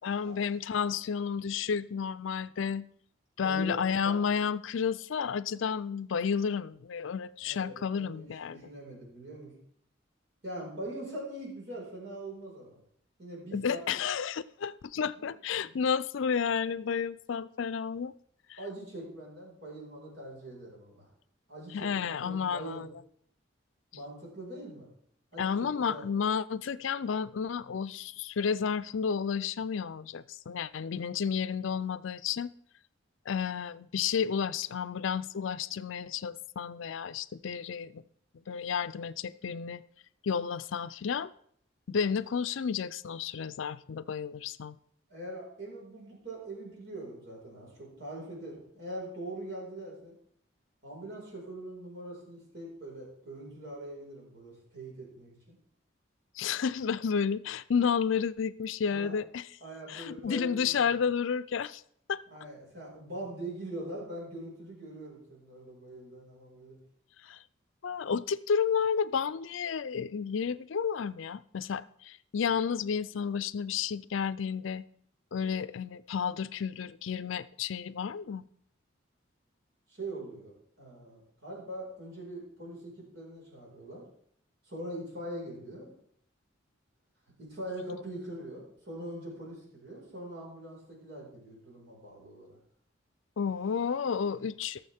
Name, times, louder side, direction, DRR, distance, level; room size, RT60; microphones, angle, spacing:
voice 1, 0.0-2.9 3.4-8.6 13.5-18.1 18.5-18.6 21.7-22.9 25.4-32.5 33.3-38.0 38.5-39.8 40.2-41.3 41.9-44.8 56.4-59.5 59.9-61.8 62.1-62.2 67.2-67.4 67.8-74.8 75.3-78.4 93.4-94.8, left 6 dB, 75° left, 0.4 m, -31 dB
voice 2, 3.4-4.1 7.4-9.5 10.4-12.8 13.2-14.1 15.6-15.8 18.6-21.1 21.5-22.8 23.9-24.9 25.3-26.1 45.1-50.1 50.8-55.6 58.9-59.1 59.6-60.8 62.3-66.8 79.9-80.5 80.8-84.0 84.6-85.9 87.4-92.6, right 1 dB, 60° right, 5.0 m, -42 dB
18.5 x 7.1 x 3.5 m
head